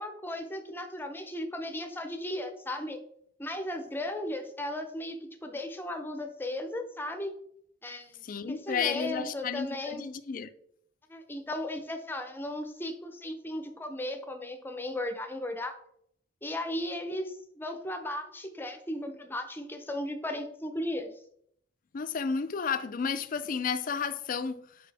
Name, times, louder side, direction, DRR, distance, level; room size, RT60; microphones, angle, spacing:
voice 1, 0.0-3.0 3.4-5.2 5.4-7.3 7.8-8.2 8.5-10.0 11.1-15.7 16.4-21.1, left 1 dB, 10° left, 0.7 m, -36 dB
voice 2, 8.2-10.5 21.9-24.9, left 6 dB, 50° left, 0.4 m, -32 dB
6.8 x 5.0 x 3.4 m
head